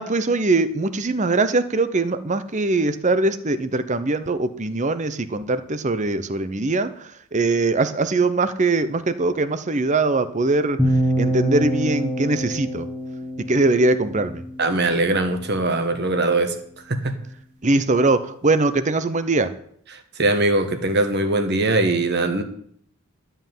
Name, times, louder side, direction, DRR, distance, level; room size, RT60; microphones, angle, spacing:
voice 1, 0.0-12.9 13.4-14.4 17.6-19.5, right 3 dB, 30° right, 12 dB, 0.8 m, -22 dB
sound 1, 10.8-14.9, right 1 dB, 5° right, 1.5 m, -25 dB
voice 2, 14.6-16.5 16.9-17.1 20.2-22.4, right 2 dB, 50° right, 7 dB, 1.4 m, -21 dB
12.5 x 5.7 x 9.2 m, 0.65 s
head